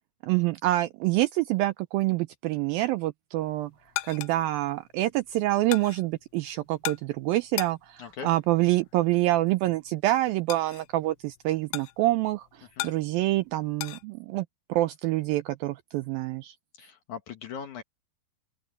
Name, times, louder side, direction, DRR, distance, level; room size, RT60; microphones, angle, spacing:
voice 1, 0.2-3.7 4.1-16.5, right 16 dB, 80° right, 2.1 m, -26 dB
sound 1, 3.4-14.0, left 19 dB, 85° left, 2.7 m, -40 dB
voice 2, 8.0-8.3 12.8-12.9 16.8-17.8, left 7 dB, 60° left, 2.3 m, -39 dB
open air
omnidirectional pair, 4.7 m